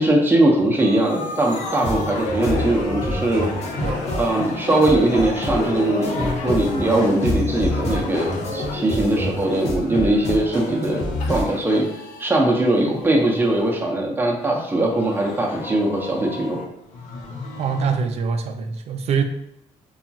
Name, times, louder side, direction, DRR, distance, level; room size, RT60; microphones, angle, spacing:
voice 1, 0.0-3.5 4.1-11.0 11.3-11.9 12.2-16.6, right 1 dB, 15° right, 0 dB, 0.6 m, -20 dB
sound 1, 0.8-13.8 14.4-18.0, left 2 dB, 80° left, 0.5 m, -34 dB
sound 2, 1.8-11.4, left 1 dB, 60° left, 1.0 m, -28 dB
sound 3, 3.5-9.5, left 2 dB, 25° left, 0.7 m, -35 dB
voice 2, 17.6-19.2, right 5 dB, 55° right, 7 dB, 0.4 m, -24 dB
2.8 x 2.3 x 2.6 m, 0.81 s
cardioid pair, 85°, 12 cm